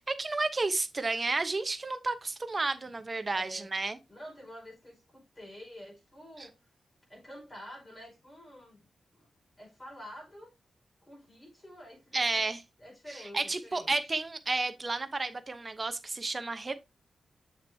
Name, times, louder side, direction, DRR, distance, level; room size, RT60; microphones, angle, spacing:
voice 1, 0.0-4.0 6.4-6.5 12.1-12.6 13.3-16.8, right 3 dB, 30° right, 0.9 m, -31 dB
voice 2, 3.1-3.7 4.1-6.6 7.1-8.9 9.1-9.3 9.6-10.5 11.0-14.1, equal, 25° left, 4.9 m, -49 dB
7.1 x 6.6 x 2.7 m
wide cardioid pair, 100°, 0 cm